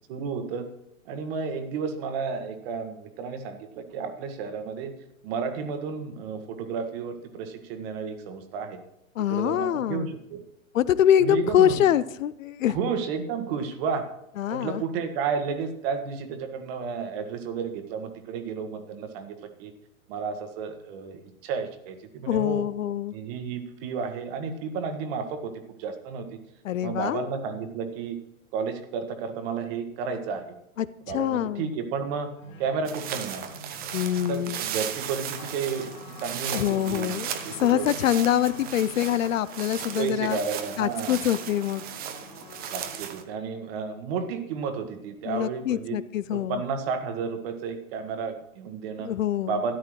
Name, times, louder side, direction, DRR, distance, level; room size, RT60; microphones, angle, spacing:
voice 1, 0.1-0.7 1.1-4.9 5.2-8.8 9.3-10.4 11.2-11.8 12.7-14.0 14.5-19.7 20.1-22.6 23.1-25.5 25.8-26.4 26.8-28.2 28.5-30.4 31.1-32.3 32.6-33.4 34.3-35.9 36.2-37.2 37.4-37.9 40.0-41.2 42.7-46.0 46.3-49.1 49.5-49.8, right 5 dB, 45° right, 7 dB, 1.6 m, -32 dB
voice 2, 9.2-10.1 10.7-12.7 14.4-14.8 22.3-23.1 26.6-27.3 30.8-31.7 33.9-34.6 36.5-40.4 40.8-41.8 45.2-46.6 49.0-49.6, left 11 dB, 65° left, 16 dB, 0.6 m, -25 dB
sound 1, 32.3-43.0, left 1 dB, 25° left, 2.8 m, -46 dB
sound 2, 32.9-43.2, right 9 dB, 20° right, 0.8 m, -36 dB
13.0 x 10.5 x 3.2 m, 0.80 s
hypercardioid pair, 120°, 42 cm